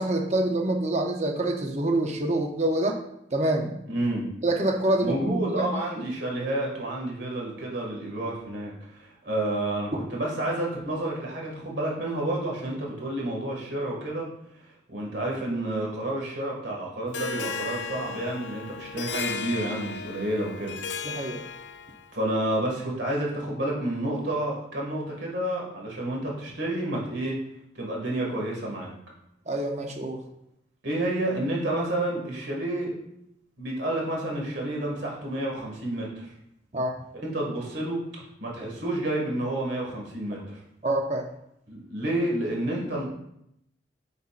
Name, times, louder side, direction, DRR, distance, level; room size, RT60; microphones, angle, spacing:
voice 1, 0.0-3.0 3.3-3.7 4.4-5.7 6.0-6.1 21.0-21.4 29.5-30.2 36.7-36.9 40.8-41.3, right 1 dB, 35° right, 3 dB, 0.7 m, -26 dB
voice 2, 3.9-4.3 5.0-14.3 14.9-20.8 22.1-27.4 27.8-28.9 30.8-32.9 33.6-36.3 37.1-38.0 38.4-40.6 41.7-43.0, right 1 dB, 70° right, -2 dB, 2.1 m, -30 dB
Harp, 17.1-22.1, left 5 dB, 70° left, 0.5 m, -35 dB
7.8 x 5.5 x 2.5 m, 0.77 s
head